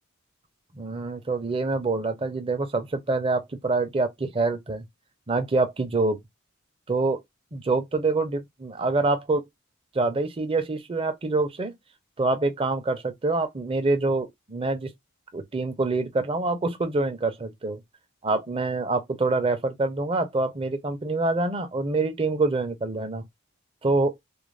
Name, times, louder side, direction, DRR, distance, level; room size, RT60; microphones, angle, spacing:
voice 1, 0.7-4.8 5.3-6.2 6.9-7.2 7.5-9.4 9.9-11.7 12.2-14.9 15.3-17.8 18.2-23.2 23.8-24.2, right 3 dB, 25° right, 0.5 m, -26 dB
2.4 x 2.1 x 3.1 m
head